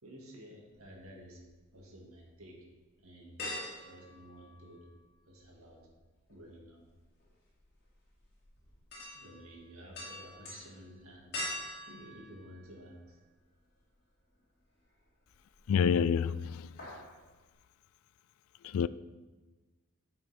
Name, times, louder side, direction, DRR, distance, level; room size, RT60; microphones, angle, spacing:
voice 1, 0.0-1.4 1.7-2.7 3.0-3.4 3.8-4.9 5.3-5.8 6.3-6.8 9.1-11.3 11.9-13.2, equal, 90° right, 2.1 m, -52 dB
sound 1, 0.8-1.7 2.2-2.3 3.4-5.1 5.4-13.3 13.7-13.8 15.3-15.8 16.1-16.3 16.6-17.2 17.5-17.6, left 1 dB, 50° left, 2.3 m, -44 dB
voice 2, 15.7-16.9 18.6-18.9, left 7 dB, 85° left, 0.3 m, -28 dB
9.5 x 5.6 x 4.2 m
head